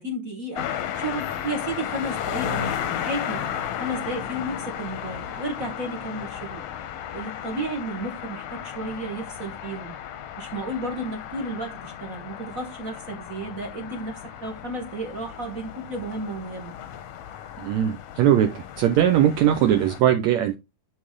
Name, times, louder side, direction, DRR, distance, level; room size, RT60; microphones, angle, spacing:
voice 1, 0.0-3.4 3.8-6.7 7.1-10.0 10.4-16.8, right 1 dB, 45° right, 1.1 m, -33 dB
sound 1, 0.5-20.0, left 9 dB, 70° left, 1.6 m, -34 dB
voice 2, 17.6-20.5, right 11 dB, 75° right, 1.9 m, -20 dB
11.0 x 4.1 x 3.7 m
omnidirectional pair, 3.6 m